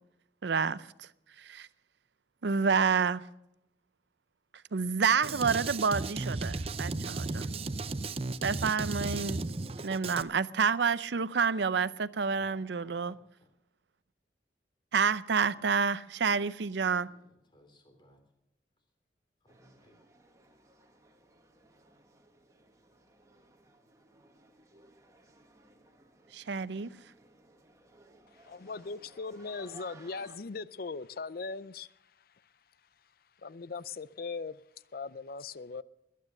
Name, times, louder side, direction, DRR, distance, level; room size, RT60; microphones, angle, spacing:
voice 1, 0.4-1.1 1.4-1.7 2.4-3.2 4.7-7.5 8.4-9.4 9.8-13.1 14.9-17.1 26.3-26.9, right 5 dB, 80° right, 0.6 m, -29 dB
Drum kit, 5.2-10.2, right 3 dB, 35° right, 0.6 m, -35 dB
voice 2, 12.4-13.5 17.0-18.2 19.4-20.0, left 1 dB, 25° left, 3.3 m, -61 dB
sound 1, 19.5-30.4, right 2 dB, 20° right, 1.5 m, -59 dB
voice 3, 28.4-31.9 33.4-34.6 34.9-35.8, left 4 dB, 55° left, 0.5 m, -39 dB
22.0 x 9.4 x 6.5 m
head